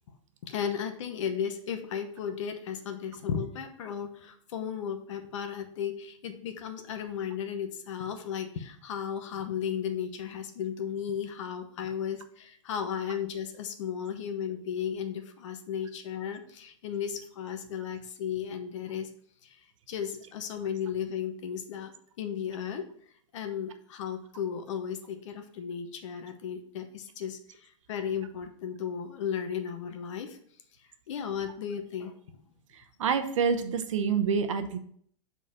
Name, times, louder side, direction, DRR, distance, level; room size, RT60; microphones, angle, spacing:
voice 1, 0.4-19.1 19.4-21.9 22.2-22.8 23.3-30.4 31.1-32.5, left 8 dB, 75° left, 7 dB, 0.9 m, -35 dB
voice 2, 32.7-34.8, right 6 dB, 85° right, 9 dB, 0.8 m, -27 dB
5.2 x 3.9 x 5.9 m, 0.63 s
supercardioid pair, 130°, 16 cm